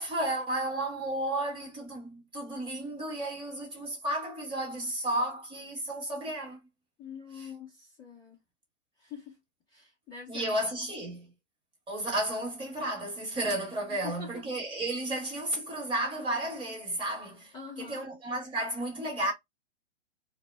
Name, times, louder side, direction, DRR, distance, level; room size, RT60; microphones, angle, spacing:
voice 1, 0.0-6.6 7.4-7.5 10.3-11.3 11.9-19.3, right 1 dB, 15° right, 1.0 m, -33 dB
voice 2, 7.0-8.4 9.0-9.4 9.7-10.5 13.9-14.3 17.5-18.1, left 6 dB, 10° left, 0.5 m, -44 dB
2.1 x 2.0 x 3.1 m
hypercardioid pair, 125°, 37 cm